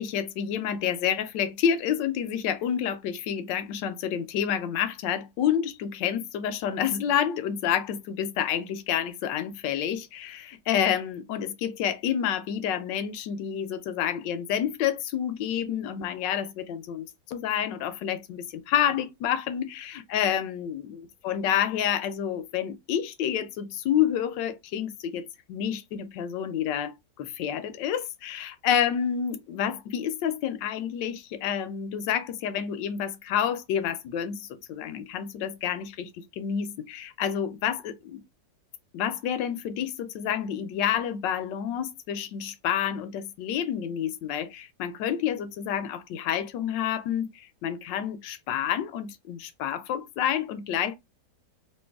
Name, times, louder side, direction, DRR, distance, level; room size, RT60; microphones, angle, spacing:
voice 1, 0.0-38.2 38.9-51.0, left 9 dB, 85° left, 1.3 m, -29 dB
3.0 x 2.9 x 3.4 m
omnidirectional pair, 1.9 m